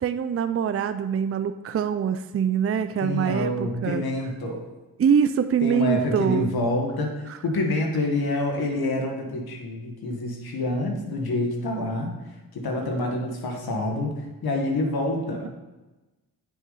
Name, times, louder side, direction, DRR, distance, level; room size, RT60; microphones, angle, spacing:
voice 1, 0.0-4.0 5.0-6.5, right 7 dB, 40° right, 10 dB, 0.5 m, -24 dB
voice 2, 3.0-4.7 5.6-12.2 12.5-15.5, left 2 dB, 75° left, 2 dB, 1.8 m, -27 dB
9.2 x 6.4 x 4.1 m, 1.1 s
cardioid pair, 80°, 37 cm